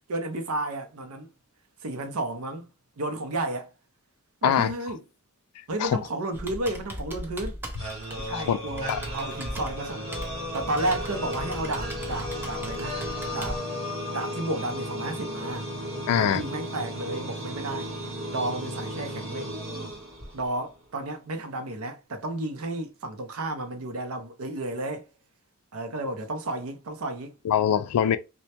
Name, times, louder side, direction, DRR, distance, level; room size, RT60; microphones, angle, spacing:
voice 1, 0.1-1.3 1.8-2.6 3.0-3.7 4.4-5.0 5.7-7.6 8.2-10.1 10.5-13.0 13.3-13.6 14.1-15.7 16.1-17.9 18.3-19.5 20.3-25.1 25.7-27.3, right 2 dB, 70° right, 0.5 m, -32 dB
Computer keyboard, 6.3-13.6, equal, 10° right, 0.4 m, -39 dB
sound 1, 7.8-20.7, equal, 25° right, 0.9 m, -35 dB
voice 2, 16.1-16.4 27.4-28.2, left 9 dB, 90° left, 0.3 m, -23 dB
2.1 x 2.1 x 2.7 m
head